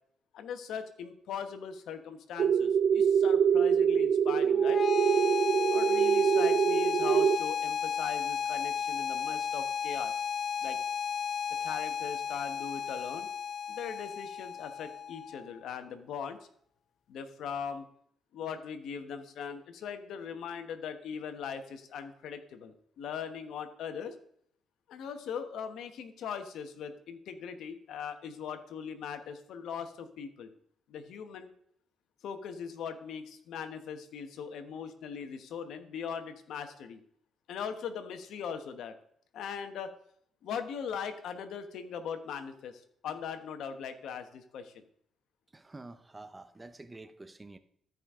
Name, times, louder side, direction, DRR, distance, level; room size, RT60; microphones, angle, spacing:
voice 1, 0.3-4.8 5.7-10.2 10.6-10.8 11.6-13.3 13.7-16.4 17.1-17.9 18.3-24.1 24.9-30.5 30.9-31.5 32.2-37.0 37.5-38.9 39.3-39.9 40.4-44.8, left 7 dB, 75° left, 8 dB, 1.1 m, -40 dB
sound 1, 2.4-7.4, right 7 dB, 60° right, 0.3 m, -25 dB
sound 2, 4.5-15.6, left 7 dB, 50° left, 0.5 m, -34 dB
voice 2, 45.5-47.6, right 2 dB, 20° right, 11 dB, 0.8 m, -48 dB
13.5 x 5.2 x 3.7 m, 0.65 s
cardioid pair, 90°, 0 cm